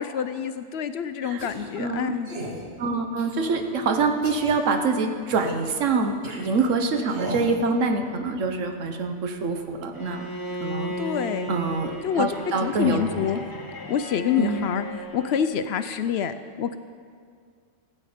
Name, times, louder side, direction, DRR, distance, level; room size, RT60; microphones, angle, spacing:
voice 1, 0.0-2.3 11.0-11.5 12.0-12.3 12.6-13.4 13.9-14.9 15.1-16.8, left 8 dB, 65° left, 11 dB, 0.7 m, -26 dB
sound 1, 1.4-1.7 2.2-2.6 3.2-3.7 4.2-4.5 5.3-5.7 6.2-6.4 7.1-7.5, right 1 dB, 55° right, 1.7 m, -37 dB
voice 2, 1.8-2.2 2.8-10.3 10.6-10.9 11.5-13.0 14.4-14.7, right 4 dB, 80° right, 5 dB, 1.3 m, -25 dB
Bowed string instrument, 9.9-15.5, equal, 20° left, 0.8 m, -35 dB
15.5 x 8.9 x 5.0 m, 2.1 s
omnidirectional pair, 1.3 m